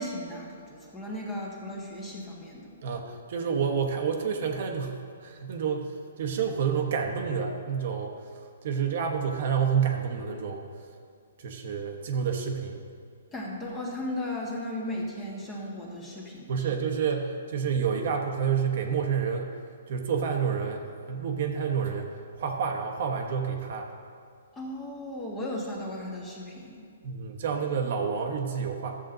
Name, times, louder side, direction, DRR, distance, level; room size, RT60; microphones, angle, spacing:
voice 1, 0.0-2.7 13.3-16.7 24.5-26.9, left 1 dB, 15° left, -2 dB, 1.6 m, -36 dB
voice 2, 2.8-8.2 8.6-10.6 11.4-12.9 16.5-19.5 19.9-23.9 27.0-29.0, right 6 dB, 50° right, 3 dB, 1.0 m, -29 dB
13.0 x 7.5 x 3.9 m, 2.2 s
hypercardioid pair, 155°, 0 cm